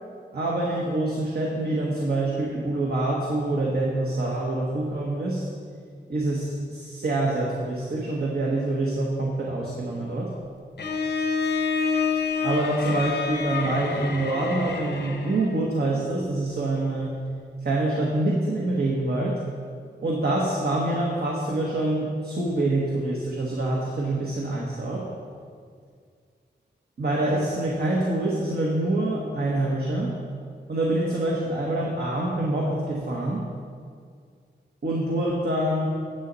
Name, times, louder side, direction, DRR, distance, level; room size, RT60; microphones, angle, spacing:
voice 1, 0.3-5.4 6.1-10.3 12.4-17.1 17.6-19.4 20.0-25.1 27.0-30.1 30.7-33.5 34.8-35.9, right 2 dB, 60° right, -3 dB, 1.4 m, -26 dB
Bowed string instrument, 10.8-15.6, left 5 dB, 70° left, 0.9 m, -28 dB
10.0 x 7.4 x 4.1 m, 2.1 s
cardioid pair, 75°, 18 cm